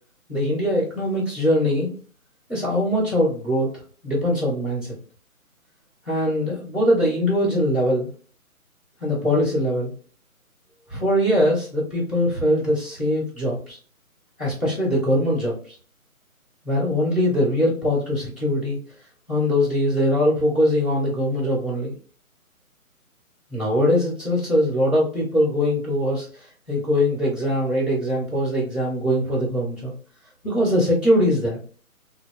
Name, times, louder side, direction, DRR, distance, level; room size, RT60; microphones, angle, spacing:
voice 1, 0.3-1.9 2.5-3.7 4.0-4.9 6.0-8.1 9.0-9.9 10.9-13.8 14.4-15.7 16.6-18.8 19.3-21.9 23.5-26.3 26.7-29.9 30.4-31.6, equal, 10° right, -10 dB, 1.7 m, -22 dB
6.2 x 2.3 x 2.3 m, 0.42 s
figure-of-eight pair, 145°, 44 cm